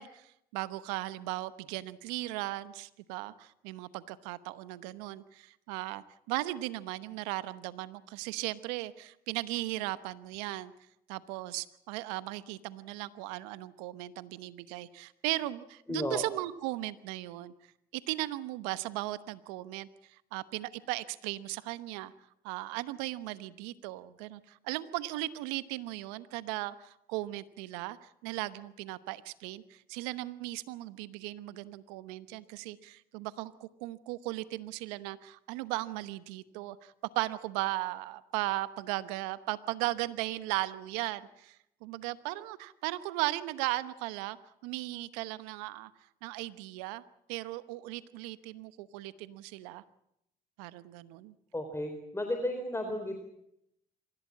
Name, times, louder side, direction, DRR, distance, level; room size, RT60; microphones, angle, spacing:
voice 1, 0.0-10.7 11.1-17.5 17.9-22.1 22.4-44.4 44.6-45.9 46.2-47.0 47.3-49.8 50.6-51.3, right 17 dB, 80° right, 15 dB, 1.0 m, -37 dB
voice 2, 15.9-16.2 51.5-53.2, left 1 dB, 15° left, 5 dB, 3.8 m, -33 dB
25.0 x 16.0 x 8.6 m, 0.79 s
hypercardioid pair, 60°, 20 cm